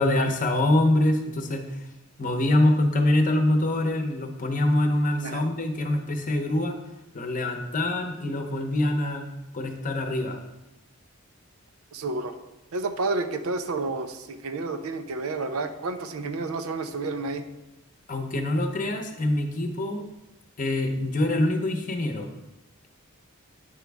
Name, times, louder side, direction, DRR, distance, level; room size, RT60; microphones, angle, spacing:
voice 1, 0.0-1.6 2.2-6.8 7.1-9.3 9.5-10.4 18.1-20.0 20.6-22.3, left 1 dB, 40° left, 4 dB, 0.8 m, -24 dB
voice 2, 11.9-12.4 12.7-17.5, right 3 dB, 90° right, 8 dB, 0.6 m, -30 dB
8.8 x 5.1 x 3.5 m, 0.96 s
head